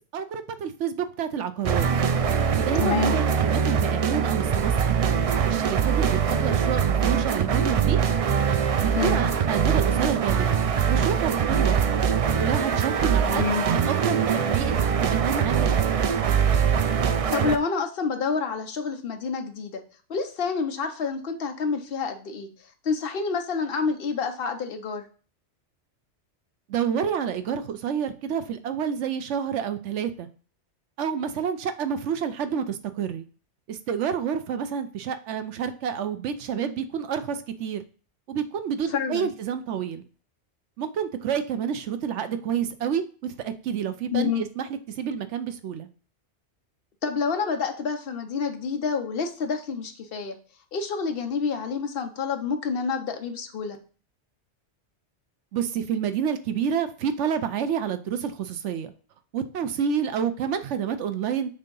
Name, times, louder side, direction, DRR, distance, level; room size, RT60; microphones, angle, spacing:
voice 1, 0.1-1.9 2.5-4.9 5.5-8.0 8.8-10.6 10.9-12.0 12.4-14.7 15.0-16.1 26.7-30.3 31.0-33.3 33.7-37.8 38.3-40.0 40.8-44.6 45.0-45.9 55.5-58.9 59.3-61.5, right 8 dB, 80° right, 10 dB, 1.0 m, -29 dB
sound 1, 1.6-17.6, right 7 dB, 65° right, 0.3 m, -23 dB
voice 2, 2.7-3.2 9.0-9.2 13.2-13.6 17.3-19.8 20.1-22.5 22.8-25.0 38.9-39.3 44.1-44.4 47.0-50.4 50.7-53.8, left 5 dB, 55° left, 6 dB, 1.0 m, -28 dB
6.9 x 2.8 x 5.3 m, 0.39 s
omnidirectional pair, 1.2 m